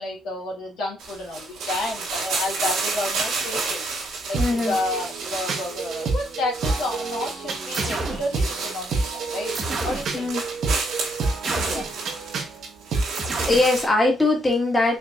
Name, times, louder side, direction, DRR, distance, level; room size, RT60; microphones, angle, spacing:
voice 1, 0.0-3.9 4.3-9.5 9.8-10.3 11.5-11.9, left 2 dB, 85° left, 1.7 m, -31 dB
sound 1, 1.0-13.9, right 4 dB, 85° right, 1.6 m, -31 dB
sound 2, 4.3-13.3, right 3 dB, 70° right, 1.1 m, -29 dB
voice 2, 4.4-4.8 10.1-10.4 13.4-15.0, left 2 dB, 20° left, 1.7 m, -21 dB
sound 3, 7.7-8.3 9.5-10.1 11.4-11.9 13.1-13.7, right 3 dB, 35° right, 1.0 m, -29 dB
4.5 x 3.2 x 2.4 m
cardioid pair, 90°, 0 cm